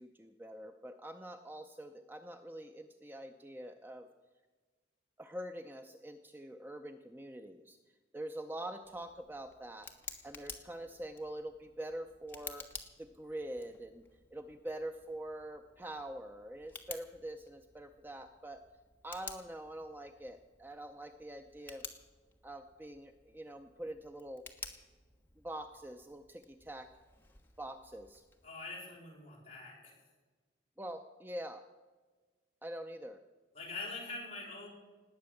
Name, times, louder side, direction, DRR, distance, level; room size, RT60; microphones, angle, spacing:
voice 1, 0.0-4.1 5.2-7.8 8.1-9.9 10.2-12.7 13.0-14.0 14.3-18.6 19.0-21.9 22.4-24.4 25.4-26.9 27.6-28.2 30.8-31.6 32.6-33.2, right 1 dB, 10° right, 7 dB, 0.5 m, -45 dB
Tick, 8.8-28.5, left 4 dB, 10° left, 1.3 m, -53 dB
voice 2, 28.4-29.9 33.5-34.7, left 3 dB, 35° left, -4 dB, 5.7 m, -44 dB
19.0 x 8.8 x 7.1 m, 1.4 s
head